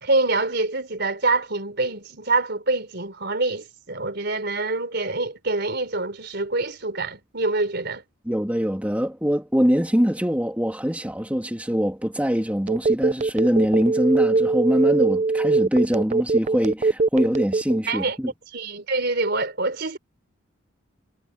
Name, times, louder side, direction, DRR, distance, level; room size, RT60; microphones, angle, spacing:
voice 1, 0.0-8.0 17.9-18.2 18.5-20.0, right 3 dB, 55° right, 4.1 m, -25 dB
voice 2, 8.2-18.3, equal, 5° right, 3.0 m, -23 dB
Telephone, 12.7-17.9, right 3 dB, 35° right, 0.5 m, -21 dB
head